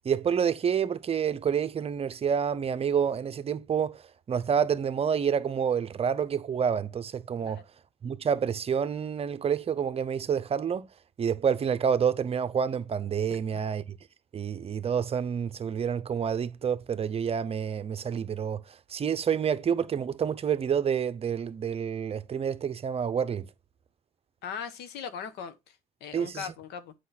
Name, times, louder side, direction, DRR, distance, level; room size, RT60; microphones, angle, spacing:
voice 1, 0.0-4.0 4.3-7.6 8.0-10.8 11.2-14.0 14.3-18.6 18.9-23.5 26.1-26.5, right 7 dB, 35° right, 0.7 m, -28 dB
voice 2, 24.4-26.9, left 7 dB, 80° left, 1.2 m, -39 dB
8.2 x 5.1 x 4.1 m
cardioid pair, 110°, 17 cm